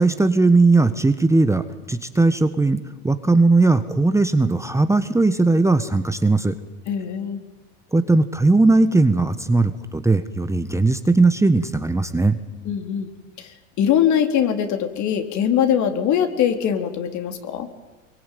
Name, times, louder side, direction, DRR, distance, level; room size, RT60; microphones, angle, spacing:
voice 1, 0.0-2.8 3.0-6.5 7.9-12.4, right 3 dB, 10° right, 10 dB, 1.3 m, -18 dB
voice 2, 6.9-7.4 12.6-13.1 13.4-13.5 13.8-17.7, left 9 dB, 50° left, 6 dB, 3.8 m, -22 dB
25.0 x 23.0 x 9.4 m, 1.2 s
hypercardioid pair, 95°, 37 cm